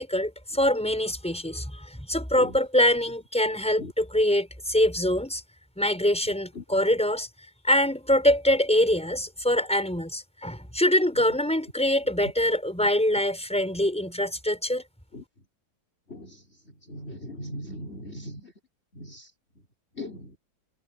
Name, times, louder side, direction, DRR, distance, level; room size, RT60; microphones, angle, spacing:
voice 1, 0.0-5.4 5.8-7.3 7.6-14.8, left 1 dB, 5° left, 6.9 m, -24 dB
voice 2, 16.9-18.4 19.0-19.1 20.0-20.2, equal, 35° left, 5.3 m, -38 dB
omnidirectional pair, 1.9 m